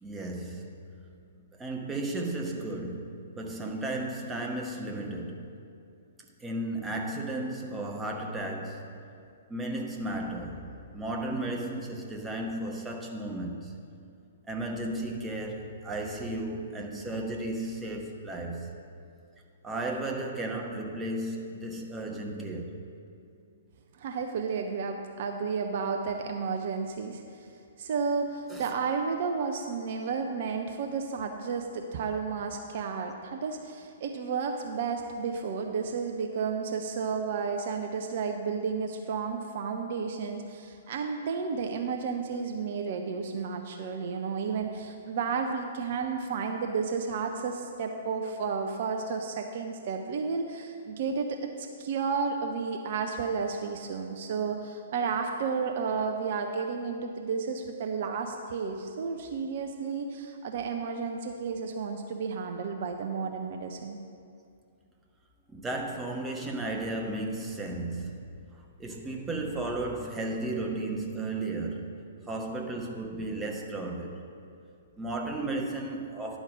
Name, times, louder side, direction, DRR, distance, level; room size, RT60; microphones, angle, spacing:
voice 1, 0.0-1.0 1.5-5.5 6.4-8.9 9.5-13.9 14.5-18.7 19.6-22.8 28.5-28.9 65.5-68.3 68.8-72.0 72.3-74.2 75.0-76.4, right 2 dB, 10° right, 0 dB, 1.0 m, -34 dB
voice 2, 24.0-27.5 27.8-64.0, right 5 dB, 45° right, 4 dB, 0.6 m, -32 dB
10.5 x 5.1 x 6.2 m, 2.4 s
figure-of-eight pair, 115°, 0 cm